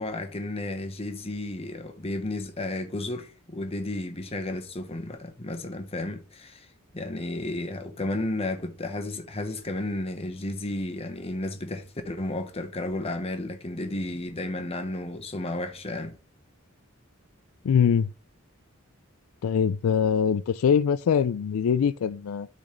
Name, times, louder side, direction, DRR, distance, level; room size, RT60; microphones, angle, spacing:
voice 1, 0.0-6.7 6.9-16.2, left 1 dB, 30° left, 1.1 m, -33 dB
voice 2, 17.6-18.1 19.4-22.5, left 7 dB, 90° left, 0.4 m, -23 dB
12.0 x 4.1 x 3.2 m
head